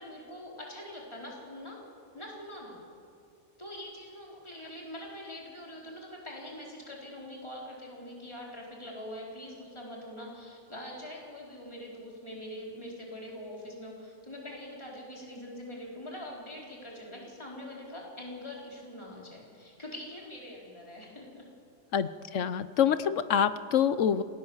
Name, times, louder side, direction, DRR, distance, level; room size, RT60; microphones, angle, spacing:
voice 1, 0.0-1.8 2.1-2.8 3.6-21.4, left 1 dB, 20° left, -3 dB, 4.3 m, -43 dB
voice 2, 21.9-24.2, left 8 dB, 80° left, 14 dB, 1.2 m, -26 dB
27.5 x 18.5 x 7.2 m, 2.5 s
omnidirectional pair, 1.3 m